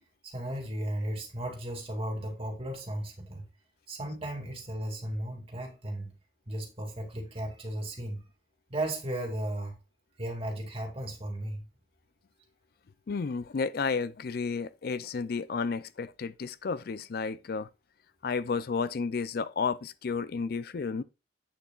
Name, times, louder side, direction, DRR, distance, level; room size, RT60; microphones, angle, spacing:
voice 1, 0.2-3.4 3.9-6.1 6.5-8.2 8.7-9.8 10.2-11.6, right 1 dB, 35° right, 2.6 m, -35 dB
voice 2, 13.1-17.7 18.2-21.0, left 5 dB, 60° left, 0.4 m, -32 dB
8.6 x 6.7 x 2.4 m
head